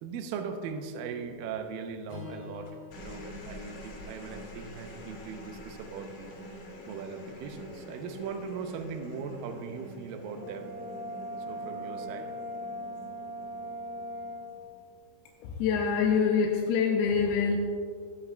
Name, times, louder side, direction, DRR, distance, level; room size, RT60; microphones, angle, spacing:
voice 1, 0.0-6.6 6.9-10.7 11.5-12.3, right 5 dB, 80° right, 5 dB, 2.0 m, -39 dB
Strum, 2.1-6.4, left 6 dB, 40° left, 2.4 m, -49 dB
sound 1, 2.7-15.3 16.5-16.9, left 1 dB, 60° left, 1.7 m, -47 dB
Brass instrument, 10.4-14.5, equal, 45° right, 3.5 m, -39 dB
voice 2, 15.4-17.6, left 6 dB, 85° left, 1 dB, 2.6 m, -25 dB
15.5 x 8.3 x 2.2 m, 2.2 s
omnidirectional pair, 4.7 m